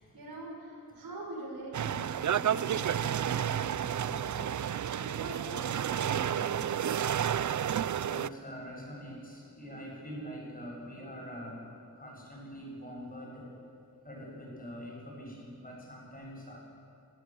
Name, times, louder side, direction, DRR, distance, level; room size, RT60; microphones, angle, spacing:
voice 1, 0.0-4.5 5.0-5.7 6.0-6.6, right 1 dB, 85° right, -1 dB, 5.9 m, -44 dB
sound 1, 1.7-8.3, right 9 dB, 55° right, 0.5 m, -31 dB
voice 2, 6.8-13.5 14.0-16.7, equal, 25° left, -3 dB, 7.9 m, -45 dB
28.0 x 14.0 x 7.7 m, 2.5 s
wide cardioid pair, 105°, 35 cm